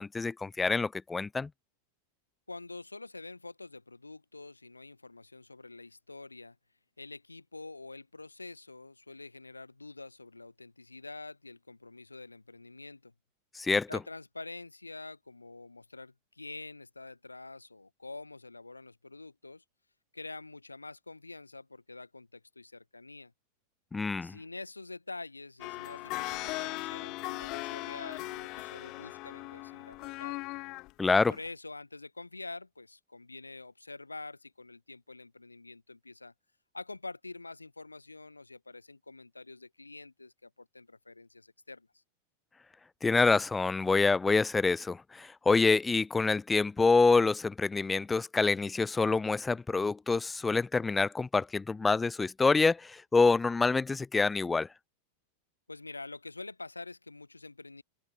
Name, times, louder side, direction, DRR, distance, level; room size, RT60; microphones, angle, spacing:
voice 1, 0.0-1.5 13.5-13.9 23.9-24.4 31.0-31.3 43.0-54.7, left 4 dB, 10° left, 0.3 m, -26 dB
voice 2, 2.5-6.6 7.0-13.1 13.9-19.6 20.1-23.3 24.2-30.4 31.3-36.3 36.7-41.9 55.7-57.8, left 3 dB, 80° left, 1.6 m, -46 dB
sound 1, 25.6-30.9 31.4-31.5, left 21 dB, 40° left, 0.8 m, -39 dB
figure-of-eight pair, 90°, 0 cm